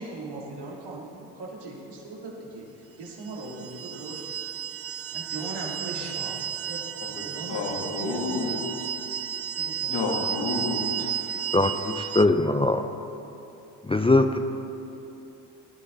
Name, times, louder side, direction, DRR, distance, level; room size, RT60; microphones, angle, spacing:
voice 1, 0.0-2.7 3.0-4.4 4.9-8.6 9.5-10.3, right 2 dB, 60° right, -3 dB, 3.2 m, -39 dB
sound 1, 3.3-12.2, right 10 dB, 35° right, 0.4 m, -33 dB
voice 2, 7.5-8.5 9.9-11.4, left 3 dB, 70° left, -1 dB, 2.7 m, -30 dB
voice 3, 11.5-12.9 13.8-14.4, left 2 dB, 10° left, 7 dB, 0.6 m, -21 dB
17.5 x 11.0 x 4.1 m, 2.9 s
hypercardioid pair, 55°, 46 cm